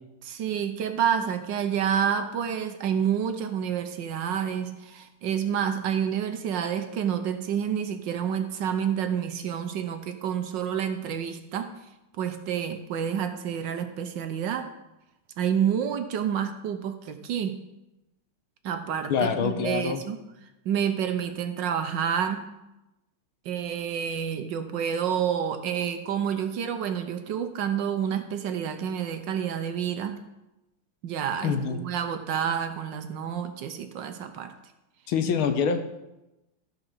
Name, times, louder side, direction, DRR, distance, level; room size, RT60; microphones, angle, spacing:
voice 1, 0.2-11.7 12.2-14.7 15.4-17.6 18.6-20.2 20.6-22.5 23.4-30.2 31.0-34.5, right 8 dB, 65° right, 8 dB, 1.3 m, -29 dB
voice 2, 19.1-20.0 31.4-31.8 35.1-35.8, left 6 dB, 80° left, 8 dB, 1.7 m, -25 dB
13.0 x 5.0 x 6.4 m, 0.95 s
omnidirectional pair, 2.3 m